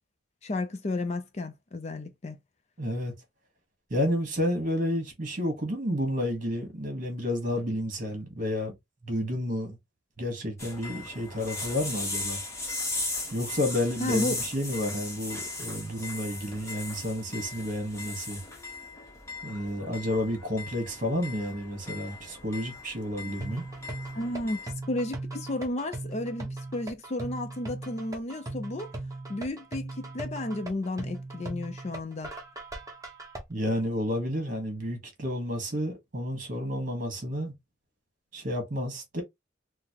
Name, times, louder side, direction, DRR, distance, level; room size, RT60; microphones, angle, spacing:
voice 1, 0.4-2.4 14.0-14.4 24.1-28.9 29.3-32.3, left 2 dB, 35° left, 0.5 m, -33 dB
voice 2, 2.8-3.1 3.9-8.7 9.0-9.8 10.2-12.4 13.3-18.4 19.4-23.6 33.5-37.5 38.3-39.2, left 1 dB, 45° right, 1.3 m, -30 dB
sound 1, 10.6-24.7, left 2 dB, 15° left, 0.9 m, -38 dB
sound 2, 23.4-33.4, right 2 dB, 15° right, 0.9 m, -39 dB
3.8 x 2.1 x 2.8 m
head